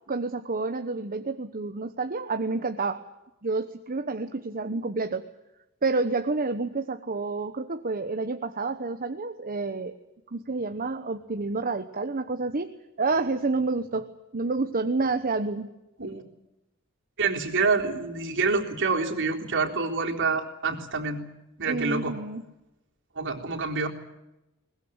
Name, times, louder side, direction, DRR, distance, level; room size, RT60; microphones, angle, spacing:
voice 1, 0.1-3.0 3.4-5.3 5.8-9.9 10.3-12.7 13.0-15.7 21.6-22.5, right 3 dB, 40° right, 7 dB, 1.1 m, -29 dB
voice 2, 17.2-21.2 21.6-22.1 23.2-23.9, right 4 dB, 60° right, 1 dB, 3.8 m, -27 dB
22.0 x 20.5 x 8.8 m, 0.94 s
head